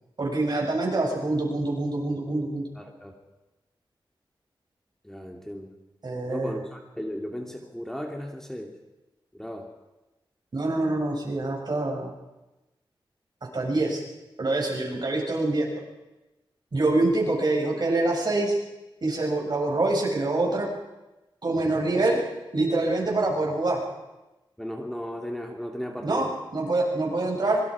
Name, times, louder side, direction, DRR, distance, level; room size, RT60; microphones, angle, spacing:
voice 1, 0.2-2.7 6.0-6.6 10.5-12.1 13.5-14.0 14.4-15.7 16.7-18.6 19.0-20.7 21.4-22.2 22.5-23.8 26.0-27.6, right 2 dB, 50° right, -1 dB, 6.9 m, -25 dB
voice 2, 2.8-3.1 5.0-5.7 6.3-8.8 9.3-9.7 24.6-26.3, equal, 5° left, 1 dB, 2.6 m, -35 dB
25.5 x 23.0 x 5.0 m, 1.0 s
wide cardioid pair, 85°, 9 cm